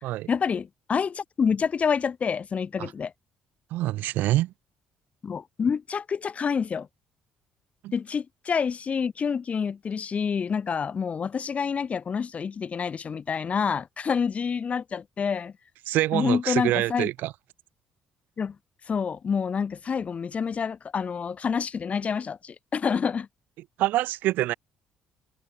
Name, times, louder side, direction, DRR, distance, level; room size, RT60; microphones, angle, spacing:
voice 1, 0.3-3.1 5.2-6.9 7.9-15.5 16.1-17.1 18.4-18.6 18.9-23.3, left 6 dB, 45° left, 5.7 m, -28 dB
voice 2, 3.7-4.5 7.8-7.9 15.9-17.3 23.8-24.5, right 16 dB, 70° right, 5.2 m, -25 dB
hypercardioid pair, 55°, 3 cm